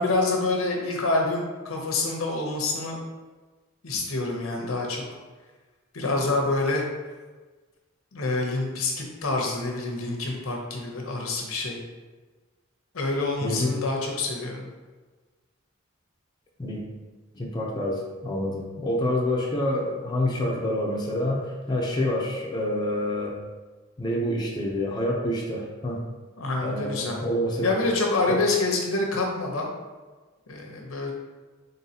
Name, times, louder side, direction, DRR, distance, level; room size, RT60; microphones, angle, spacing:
voice 1, 0.0-3.0 3.8-5.0 5.9-6.8 8.1-11.8 12.9-14.7 26.4-27.2 27.6-29.7 30.5-31.1, left 2 dB, 85° left, 0 dB, 0.8 m, -27 dB
voice 2, 13.4-13.8 16.6-16.8 17.3-23.4 24.0-26.0 26.6-27.7 28.3-28.4, left 1 dB, 20° left, -3 dB, 0.5 m, -27 dB
3.9 x 3.7 x 2.8 m, 1.3 s
head